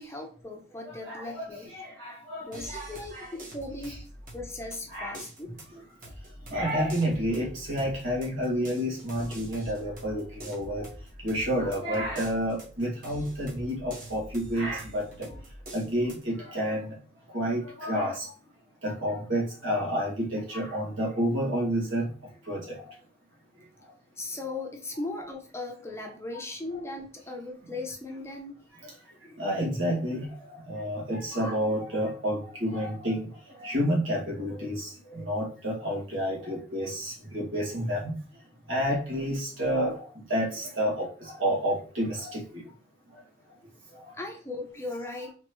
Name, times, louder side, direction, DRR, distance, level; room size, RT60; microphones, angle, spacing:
voice 1, 0.0-1.7 2.4-3.9 4.3-5.5 6.5-6.7 24.2-28.6 44.1-45.3, left 2 dB, 15° left, 2 dB, 0.6 m, -38 dB
voice 2, 0.8-1.5 1.7-3.3 3.9-4.0 4.9-5.2 6.5-10.9 11.2-15.3 15.7-16.9 17.3-18.2 18.8-22.1 22.5-22.9 29.4-33.3 33.6-38.1 38.7-40.0 40.3-42.6, equal, 75° right, -4 dB, 1.9 m, -30 dB
sound 1, 2.5-16.2, right 1 dB, 45° right, 1.5 m, -45 dB
4.3 x 3.0 x 3.0 m, 0.40 s
head